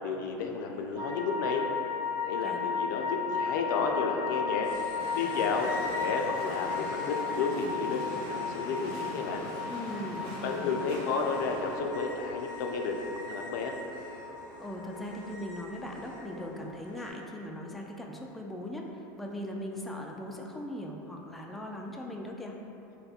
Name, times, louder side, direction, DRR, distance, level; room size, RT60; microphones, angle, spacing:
voice 1, 0.0-1.7 2.2-4.7 5.1-9.4 10.4-13.0 13.3-13.7, left 4 dB, 75° left, 2 dB, 0.4 m, -32 dB
sound 1, 1.0-17.3 17.6-17.7, left 6 dB, 35° right, 1.1 m, -36 dB
sound 2, 4.6-17.1, right 1 dB, 85° right, 0.9 m, -45 dB
sound 3, 5.0-11.8, right 2 dB, 55° right, 0.6 m, -43 dB
voice 2, 9.7-10.9 14.6-22.6, left 1 dB, ahead, -1 dB, 0.3 m, -39 dB
3.1 x 2.1 x 4.2 m, 2.9 s
hypercardioid pair, 95°, 10 cm